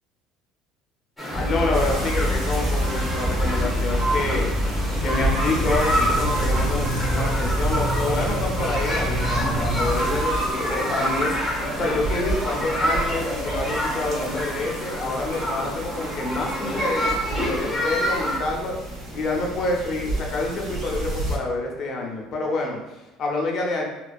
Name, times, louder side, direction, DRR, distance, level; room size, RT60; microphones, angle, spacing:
sound 1, 1.2-18.4, equal, 5° left, 0.8 m, -28 dB
voice 1, 1.3-4.5 5.0-18.8 19.1-23.8, left 2 dB, 50° left, 0 dB, 0.6 m, -27 dB
sound 2, 1.3-10.0, equal, 15° right, 0.5 m, -27 dB
sound 3, 1.7-21.4, right 2 dB, 55° right, 0.7 m, -31 dB
2.5 x 2.3 x 2.2 m, 0.96 s
hypercardioid pair, 75°, 0 cm